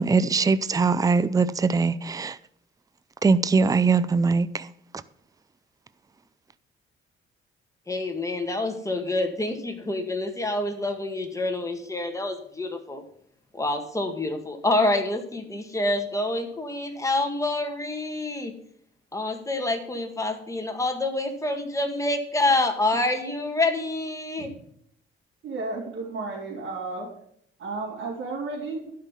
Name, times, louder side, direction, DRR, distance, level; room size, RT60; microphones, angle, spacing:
voice 1, 0.0-2.4 3.2-4.7, right 4 dB, 15° right, 0.5 m, -21 dB
voice 2, 7.9-13.0 13.5-18.5 19.1-24.5, left 2 dB, 15° left, 2.0 m, -27 dB
voice 3, 25.4-27.1 27.6-28.9, right 3 dB, 70° right, 3.4 m, -33 dB
12.0 x 5.7 x 7.1 m
cardioid pair, 105°, 21 cm